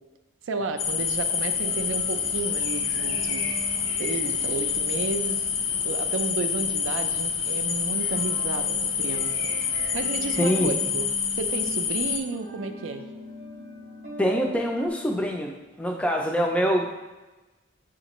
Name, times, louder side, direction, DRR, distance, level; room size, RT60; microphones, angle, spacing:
voice 1, 0.5-3.4 4.0-5.4 5.8-9.3 9.9-11.1 11.3-13.0, right 4 dB, 75° right, 7 dB, 0.4 m, -32 dB
sound 1, 0.8-12.2, left 7 dB, 85° left, 0.4 m, -27 dB
sound 2, 0.9-10.7, left 1 dB, 60° left, 1.0 m, -45 dB
sound 3, 1.5-14.9, equal, 45° right, 0.7 m, -43 dB
voice 2, 10.4-10.7 14.2-17.0, equal, 5° left, 2 dB, 0.4 m, -25 dB
7.2 x 2.5 x 3.0 m, 1.1 s
head